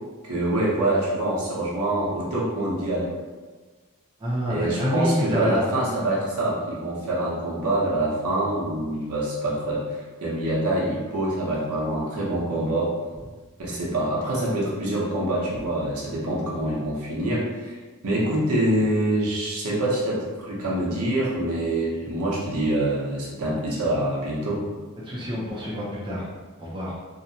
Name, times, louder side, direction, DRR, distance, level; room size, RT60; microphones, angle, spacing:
voice 1, 0.2-3.1 4.5-12.9 13.6-17.8 18.0-24.6, right 1 dB, 75° right, -5 dB, 0.7 m, -25 dB
voice 2, 4.2-5.7 25.0-26.3 26.6-27.0, equal, 20° right, -6 dB, 0.4 m, -27 dB
2.7 x 2.0 x 2.7 m, 1.3 s
head